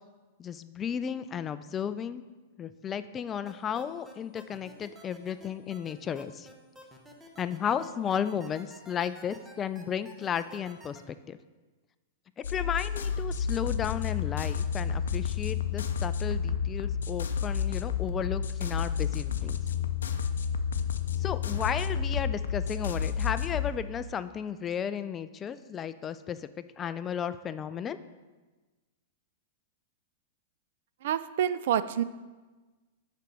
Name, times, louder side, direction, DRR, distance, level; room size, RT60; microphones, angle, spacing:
voice 1, 0.4-2.2 2.6-6.5 7.4-11.4 12.4-19.6 21.2-26.5 26.8-28.0, left 8 dB, 25° left, 13 dB, 0.3 m, -34 dB
sound 1, 3.5-11.0, equal, 10° right, 1.0 m, -51 dB
sound 2, 12.4-23.7, left 7 dB, 85° left, 0.5 m, -30 dB
voice 2, 31.0-32.0, right 10 dB, 65° right, 14 dB, 0.3 m, -27 dB
6.6 x 5.2 x 4.7 m, 1.3 s
hypercardioid pair, 125°, 0 cm